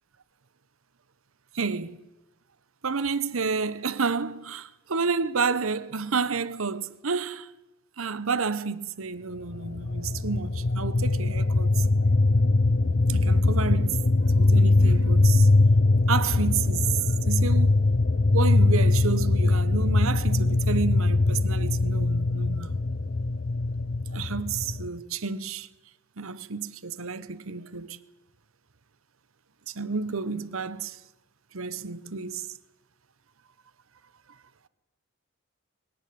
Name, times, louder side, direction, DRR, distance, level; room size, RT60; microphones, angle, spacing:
voice 1, 1.5-2.0 2.8-7.5 8.0-11.9 13.1-14.0 14.4-15.5 16.1-17.8 18.3-22.8 24.1-25.7 26.2-28.0 29.7-31.0 31.5-32.5, right 5 dB, 80° right, 1.0 m, -30 dB
sound 1, 9.5-24.9, left 2 dB, 50° left, 0.8 m, -22 dB
22.0 x 18.0 x 9.5 m
head